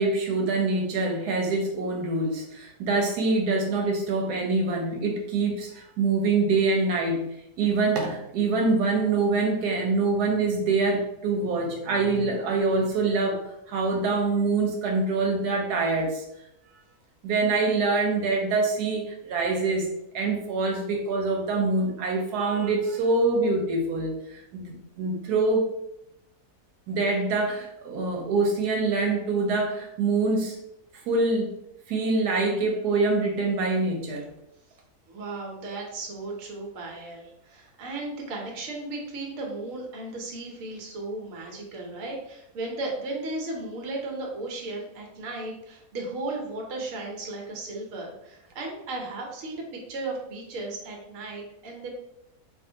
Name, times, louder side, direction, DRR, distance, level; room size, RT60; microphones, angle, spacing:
voice 1, 0.0-7.2 7.6-16.2 17.2-19.9 20.1-25.7 26.9-30.6 31.1-31.5 31.9-34.3, right 3 dB, 85° right, 1 dB, 1.1 m, -25 dB
voice 2, 35.1-51.9, right 2 dB, 65° right, 0 dB, 1.1 m, -35 dB
3.5 x 2.4 x 2.6 m, 0.81 s
omnidirectional pair, 1.6 m